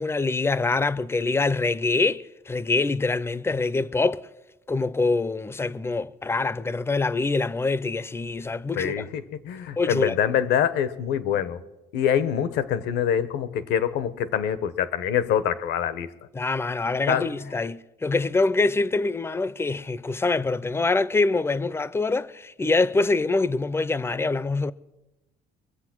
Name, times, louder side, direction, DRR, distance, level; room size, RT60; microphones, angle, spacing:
voice 1, 0.0-4.2 4.7-9.1 9.8-10.2 16.3-24.7, left 3 dB, 15° left, 0.5 m, -25 dB
voice 2, 9.4-11.6 11.9-16.1 17.1-17.3, left 9 dB, 80° left, 0.9 m, -25 dB
23.5 x 7.9 x 6.0 m
cardioid pair, 110°, 17 cm